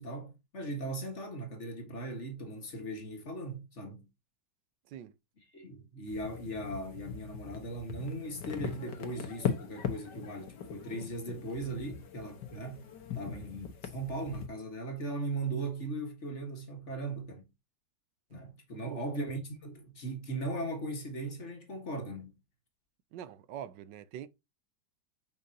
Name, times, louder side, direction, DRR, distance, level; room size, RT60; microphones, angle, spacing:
voice 1, 0.0-4.1 5.5-12.9 13.1-17.5 18.3-22.4, right 2 dB, 40° left, 1.9 m, -38 dB
sound 1, 6.1-14.5, left 8 dB, 75° left, 1.9 m, -40 dB
voice 2, 23.1-24.3, right 10 dB, 80° right, 1.3 m, -44 dB
7.2 x 5.3 x 2.8 m
omnidirectional pair, 1.9 m